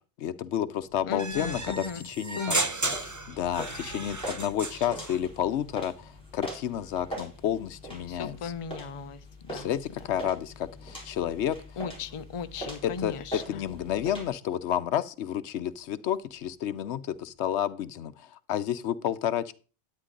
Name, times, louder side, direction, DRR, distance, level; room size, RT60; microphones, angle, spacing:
voice 1, 0.2-2.6 3.3-8.5 9.5-11.6 12.8-13.1 13.5-19.5, left 10 dB, 90° left, 15 dB, 1.0 m, -30 dB
sound 1, 0.7-17.6, equal, 70° right, 4.5 m, -56 dB
voice 2, 1.0-2.1 2.4-3.0 8.1-9.7 11.8-13.7, left 5 dB, 35° left, 10 dB, 0.6 m, -37 dB
sound 2, 1.2-5.2, right 2 dB, 20° right, 0.7 m, -33 dB
sound 3, 2.8-14.3, right 1 dB, 5° left, 3.9 m, -42 dB
9.7 x 9.5 x 3.8 m, 0.36 s
omnidirectional pair, 1.1 m